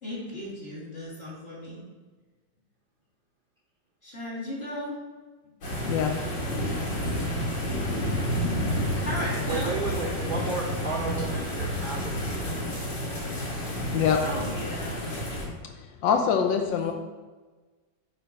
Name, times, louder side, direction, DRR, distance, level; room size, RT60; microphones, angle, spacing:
voice 1, 0.0-1.8 4.0-5.0 6.7-7.1 9.0-9.7 14.2-15.0 16.5-16.9, left 1 dB, 30° left, -7 dB, 2.7 m, -36 dB
sound 1, 5.6-15.4, equal, 60° left, 2.3 m, -30 dB
voice 2, 5.8-6.2 13.9-14.2 16.0-16.9, left 7 dB, 80° left, 4 dB, 1.3 m, -24 dB
voice 3, 9.5-12.5, right 3 dB, 75° right, -1 dB, 0.4 m, -33 dB
8.5 x 3.4 x 5.2 m, 1.3 s
omnidirectional pair, 2.1 m